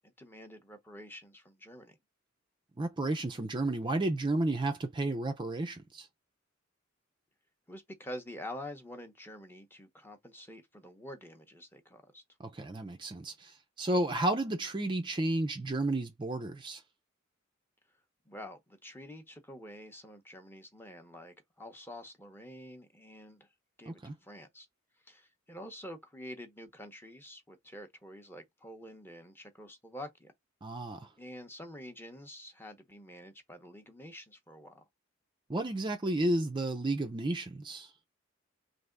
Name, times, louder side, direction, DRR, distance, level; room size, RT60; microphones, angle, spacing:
voice 1, 0.0-2.0 7.7-12.2 18.3-23.5 23.8-24.7 25.1-30.3 31.2-34.8, left 1 dB, 10° left, 0.7 m, -47 dB
voice 2, 2.8-6.1 12.4-16.8 23.9-24.2 30.6-31.1 35.5-37.9, right 2 dB, 25° right, 0.4 m, -32 dB
3.4 x 2.6 x 3.7 m
head